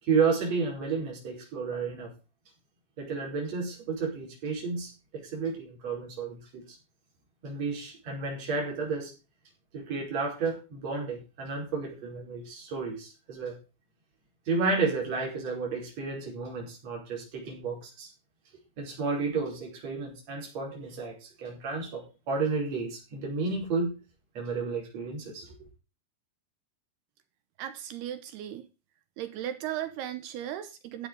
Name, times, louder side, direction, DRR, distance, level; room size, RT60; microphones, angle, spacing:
voice 1, 0.0-2.1 3.0-6.6 7.4-9.1 9.7-13.6 14.5-18.1 18.8-24.0 24.4-25.5, right 4 dB, 40° right, 5.6 m, -32 dB
voice 2, 27.6-28.7 29.2-31.1, right 11 dB, 75° right, 2.8 m, -36 dB
13.0 x 7.8 x 5.2 m
omnidirectional pair, 5.0 m